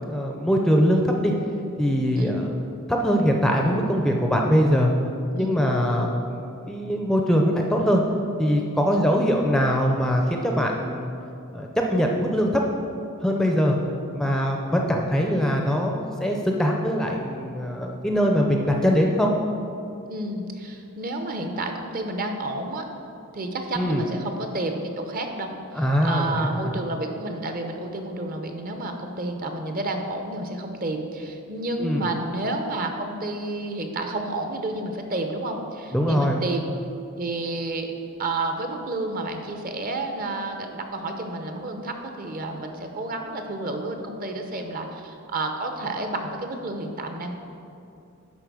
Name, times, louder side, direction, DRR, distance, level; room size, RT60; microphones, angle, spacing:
voice 1, 0.1-1.3 1.8-2.5 2.9-4.9 5.3-8.0 8.4-11.1 11.5-12.6 13.2-13.8 14.1-19.3 23.7-24.0 25.7-26.8 31.8-32.1 35.9-36.4, equal, 5° left, 1 dB, 0.5 m, -22 dB
voice 2, 20.1-22.8 23.3-25.5 25.7-36.8 37.2-37.9 38.2-47.4, right 2 dB, 40° right, 4 dB, 0.8 m, -30 dB
10.5 x 4.2 x 6.1 m, 2.6 s
head